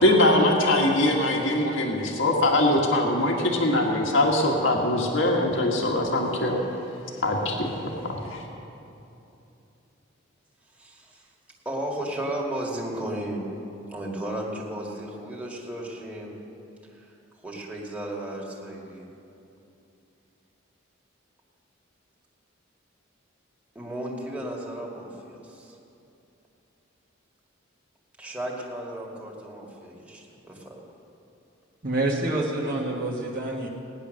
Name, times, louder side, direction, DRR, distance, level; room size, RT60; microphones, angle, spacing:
voice 1, 0.0-6.6 7.2-7.7 8.1-8.5, left 1 dB, 65° left, 0 dB, 1.8 m, -22 dB
voice 2, 11.7-13.5 13.9-16.3 17.4-19.1 23.8-25.7 28.2-30.8, right 1 dB, 5° right, -3 dB, 2.0 m, -34 dB
voice 3, 31.8-33.7, right 2 dB, 45° right, -3 dB, 1.5 m, -27 dB
18.0 x 10.5 x 6.4 m, 2.8 s
head